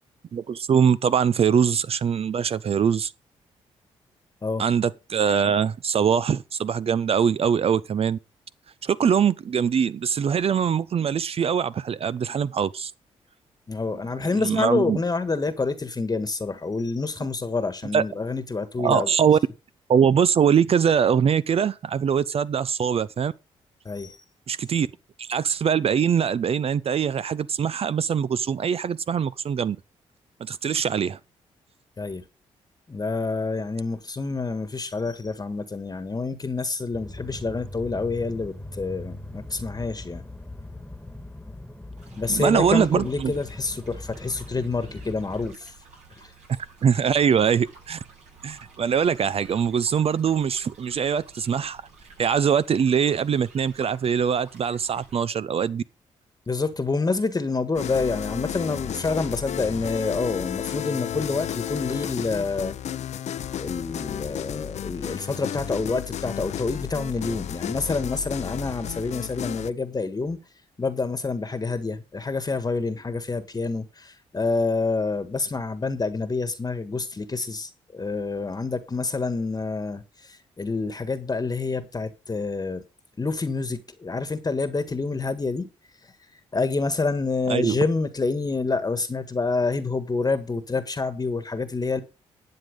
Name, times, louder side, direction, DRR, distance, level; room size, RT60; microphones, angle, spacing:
voice 1, 0.3-3.1 4.6-8.2 8.8-12.9 14.3-15.0 17.9-18.0 18.8-19.4 19.9-23.3 24.5-24.9 25.2-29.8 30.4-31.2 42.3-43.3 46.8-48.0 48.4-51.8 52.2-55.8 87.5-87.8, right 7 dB, 50° right, 0.6 m, -22 dB
voice 2, 13.7-19.1 23.8-24.2 32.0-32.2 32.9-40.2 42.2-45.7 46.2-46.3 56.5-62.7 63.6-70.4 70.8-82.8 83.2-85.7 86.5-92.0, left 3 dB, 30° left, 1.4 m, -27 dB
sound 1, 36.9-45.5, left 1 dB, 10° left, 1.6 m, -40 dB
sound 2, 42.0-55.2, right 4 dB, 70° right, 7.2 m, -51 dB
sound 3, 57.8-69.7, left 10 dB, 65° left, 0.7 m, -33 dB
11.5 x 7.7 x 5.2 m
supercardioid pair, 55°, 13 cm